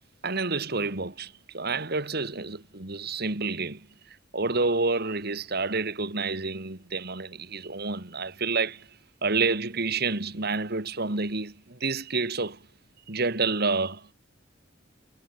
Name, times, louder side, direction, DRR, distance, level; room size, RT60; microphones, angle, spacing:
voice 1, 0.2-3.9 4.3-8.9 9.2-12.6 13.1-14.1, right 3 dB, 55° right, 2.5 m, -29 dB
head